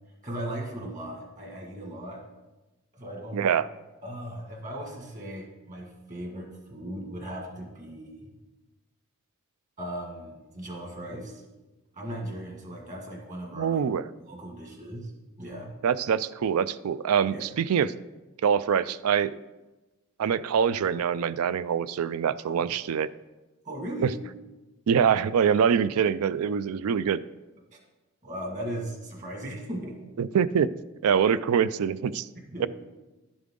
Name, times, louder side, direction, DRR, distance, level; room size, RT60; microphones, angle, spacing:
voice 1, 0.2-2.2 2.9-3.4 4.0-8.3 9.8-11.4 11.9-13.8 14.2-15.1 15.4-15.7 17.3-17.5 22.5-22.7 23.6-24.2 27.7-27.8 28.2-30.1 32.4-32.7, right 1 dB, 35° right, 1 dB, 1.7 m, -37 dB
voice 2, 3.3-3.7 13.5-14.1 15.8-17.9 18.4-19.3 20.2-23.1 24.9-27.2 30.2-30.7 31.0-32.3 32.6-32.7, right 7 dB, 75° right, 17 dB, 0.3 m, -24 dB
11.0 x 7.2 x 3.7 m, 1.1 s
head